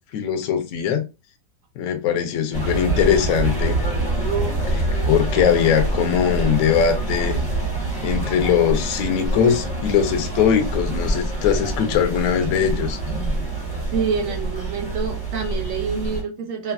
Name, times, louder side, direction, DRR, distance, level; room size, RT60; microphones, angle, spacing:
voice 1, 0.1-1.0 1.8-3.8 4.7-7.4 8.0-13.0, left 8 dB, 65° left, 0.8 m, -21 dB
sound 1, 2.5-16.2, right 2 dB, 5° left, 0.7 m, -25 dB
voice 2, 13.9-16.7, right 5 dB, 65° right, 0.8 m, -27 dB
3.2 x 2.3 x 2.3 m
omnidirectional pair, 1.9 m